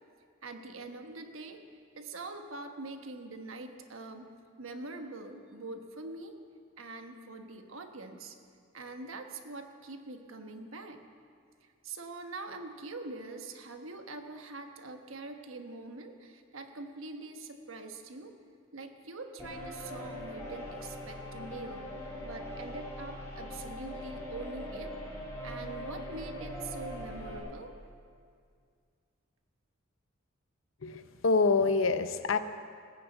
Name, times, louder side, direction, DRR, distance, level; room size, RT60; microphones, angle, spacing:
voice 1, 0.4-1.6 2.0-4.3 4.6-6.4 6.8-8.4 8.7-11.0 11.6-18.3 18.7-21.9 22.2-24.9 25.4-27.7, right 3 dB, 75° right, 5 dB, 1.2 m, -44 dB
sound 1, 19.4-27.4, left 1 dB, 15° left, 3.4 m, -41 dB
voice 2, 30.8-32.4, left 4 dB, 65° left, 11 dB, 0.7 m, -26 dB
19.5 x 7.1 x 8.1 m, 2.2 s
head